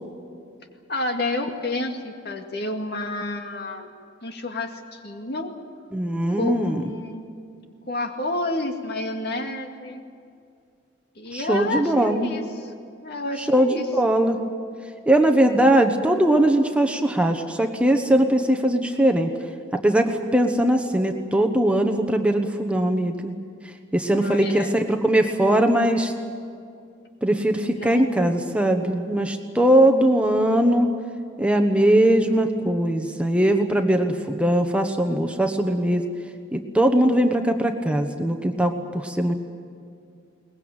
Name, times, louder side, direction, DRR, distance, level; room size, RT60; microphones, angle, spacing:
voice 1, 0.9-3.9 4.2-5.5 6.3-7.4 7.9-10.0 11.2-12.7 13.0-13.9 24.1-24.7 27.7-28.1, left 2 dB, 55° left, 4 dB, 2.2 m, -30 dB
voice 2, 5.9-6.8 11.3-12.3 13.5-14.4 15.1-19.3 19.8-23.3 23.9-26.1 27.2-30.9 31.4-36.0 36.5-39.4, right 1 dB, 5° right, 5 dB, 1.1 m, -20 dB
22.5 x 20.0 x 8.9 m, 2.3 s
head